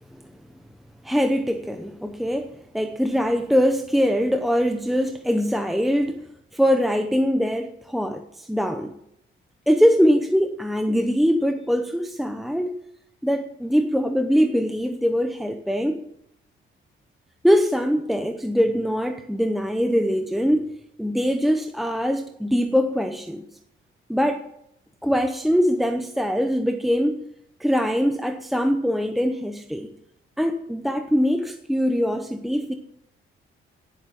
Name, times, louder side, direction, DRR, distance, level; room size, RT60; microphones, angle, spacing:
voice 1, 1.0-8.9 9.7-12.8 13.2-16.0 17.4-20.7 21.0-23.4 24.1-24.4 25.0-27.2 27.6-29.9 30.4-32.7, equal, ahead, 6 dB, 0.8 m, -22 dB
18.0 x 8.5 x 5.9 m, 0.77 s
cardioid pair, 140°, 21 cm